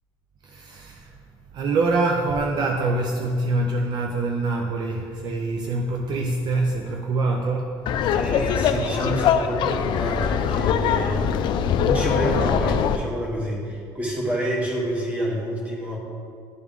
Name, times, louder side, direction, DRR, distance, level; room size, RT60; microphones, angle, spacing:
voice 1, 0.4-1.2 1.5-8.3, right 3 dB, 50° right, 2 dB, 0.5 m, -25 dB
Laughter, 7.9-13.0, left 7 dB, 55° left, 0.3 m, -22 dB
voice 2, 8.1-11.3 11.8-16.0, equal, 15° right, -3 dB, 1.4 m, -28 dB
11.0 x 3.6 x 3.6 m, 2.3 s
cardioid pair, 130°, 9 cm